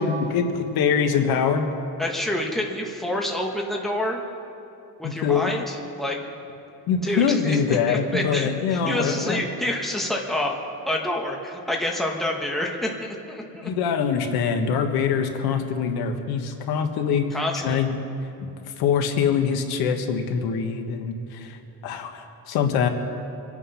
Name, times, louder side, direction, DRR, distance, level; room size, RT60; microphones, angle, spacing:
voice 1, 0.0-1.7 5.0-5.5 6.9-9.4 13.6-17.3 17.6-18.0 18.8-21.6 21.8-22.9, left 6 dB, 80° left, 5 dB, 1.5 m, -24 dB
voice 2, 2.0-4.2 5.0-6.2 7.0-10.6 10.9-13.7 17.3-17.8, left 1 dB, ahead, -1 dB, 1.4 m, -28 dB
25.5 x 9.0 x 5.7 m, 2.8 s
cardioid pair, 160°, 37 cm